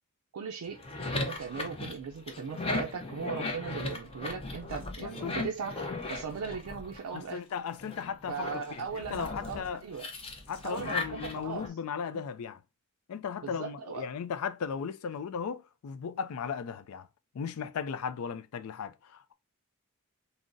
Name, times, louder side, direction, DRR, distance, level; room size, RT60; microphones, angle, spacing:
voice 1, 0.3-0.8 1.1-5.8 6.1-7.4 8.3-10.1 10.6-11.8 12.1-12.2 13.4-14.1, right 6 dB, 85° right, 0.4 m, -38 dB
sound 1, 0.7-7.3 7.8-11.7, left 2 dB, 25° left, 0.5 m, -37 dB
voice 2, 5.0-5.4 7.1-8.5 8.8-9.8 10.5-12.6 13.1-17.1 17.3-19.3, left 6 dB, 75° left, 0.4 m, -36 dB
3.7 x 2.0 x 2.5 m
head